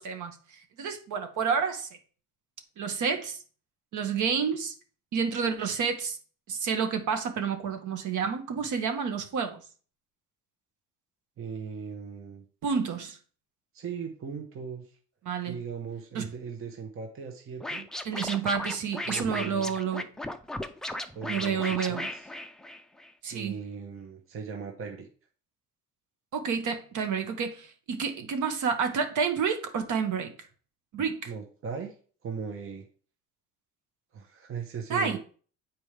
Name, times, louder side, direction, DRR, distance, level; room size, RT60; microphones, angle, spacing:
voice 1, 0.0-1.9 2.8-3.4 3.9-4.7 5.1-6.2 6.5-9.6 12.6-13.2 15.2-15.6 16.1-16.3 18.0-20.0 21.3-22.0 23.2-23.6 26.3-30.3 30.9-31.3 34.9-35.2, right 6 dB, 65° right, 1.3 m, -29 dB
voice 2, 11.4-12.4 13.7-15.0 15.5-17.9 19.0-19.7 21.1-22.3 23.3-25.1 31.2-32.0 32.2-32.9 34.1-35.2, right 6 dB, 40° right, 1.0 m, -38 dB
Scratching (performance technique), 17.6-23.1, left 1 dB, ahead, 0.3 m, -36 dB
8.9 x 4.4 x 3.3 m
cardioid pair, 155°, 33 cm